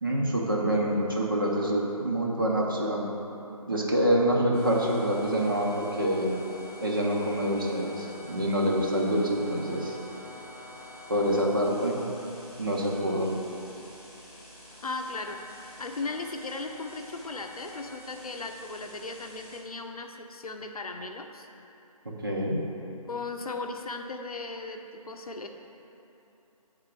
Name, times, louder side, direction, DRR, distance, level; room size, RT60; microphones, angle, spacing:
voice 1, 0.0-3.1 3.7-6.3 6.8-9.9 11.1-12.0 12.6-13.3 22.0-22.6, equal, 35° right, -2 dB, 0.7 m, -26 dB
sound 1, 4.5-19.6, left 2 dB, 20° left, 1.4 m, -47 dB
voice 2, 14.8-15.4 15.8-21.5 23.1-25.5, left 3 dB, 70° left, 4 dB, 0.6 m, -37 dB
7.9 x 3.7 x 4.5 m, 3.0 s
figure-of-eight pair, 175°, 19 cm